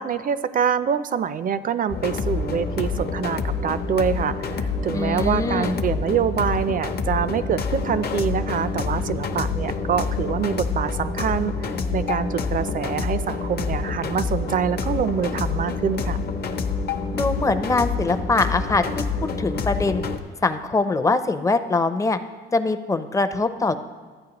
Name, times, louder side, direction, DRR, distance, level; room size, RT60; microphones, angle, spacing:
voice 1, 0.0-11.5 11.9-16.2, right 7 dB, 45° right, 14 dB, 0.4 m, -25 dB
sound 1, 1.9-20.2, left 4 dB, 50° left, 0.8 m, -27 dB
voice 2, 4.9-5.8 17.1-19.0 19.4-20.0 20.4-22.2 22.5-23.7, left 3 dB, 15° left, 9 dB, 0.5 m, -23 dB
13.0 x 9.0 x 2.9 m, 1.5 s
cardioid pair, 90°, 20 cm